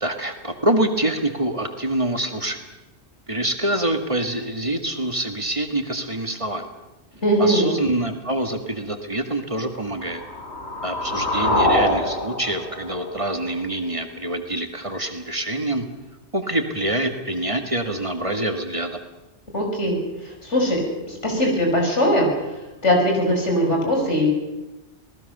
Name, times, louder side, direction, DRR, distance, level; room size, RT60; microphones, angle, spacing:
voice 1, 0.0-2.6 3.3-6.7 7.4-10.2 10.8-15.9 16.3-19.0, right 1 dB, 30° right, 5 dB, 2.0 m, -25 dB
voice 2, 7.2-7.7 19.5-20.0 20.2-22.3 22.8-24.3, equal, 85° left, 1 dB, 5.9 m, -20 dB
sound 1, 9.9-13.9, left 1 dB, 70° left, 4.3 m, -25 dB
26.5 x 19.0 x 6.8 m, 1.0 s
omnidirectional pair, 1.2 m